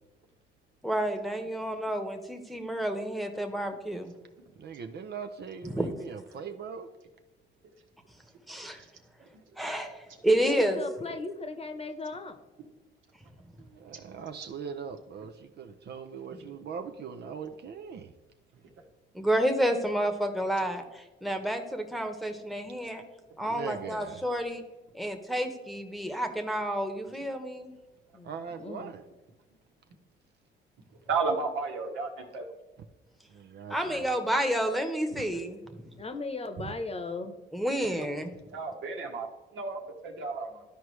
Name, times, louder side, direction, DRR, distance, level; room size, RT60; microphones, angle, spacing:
voice 1, 0.8-4.1 5.6-5.9 8.5-8.8 9.6-10.8 19.1-23.0 23.4-24.6 24.9-27.7 33.7-35.6 37.5-38.3, right 1 dB, ahead, 1.0 m, -30 dB
voice 2, 4.6-6.9 13.6-18.1 23.5-24.3 28.2-29.0 33.3-34.0 35.1-35.2 36.6-36.7, right 6 dB, 55° right, 0.6 m, -40 dB
voice 3, 10.4-12.4 28.1-28.9 36.0-37.4, left 3 dB, 30° left, 1.0 m, -37 dB
voice 4, 31.1-32.4 38.5-40.6, right 4 dB, 80° right, 1.4 m, -33 dB
12.5 x 4.7 x 3.2 m
cardioid pair, 90°, 20 cm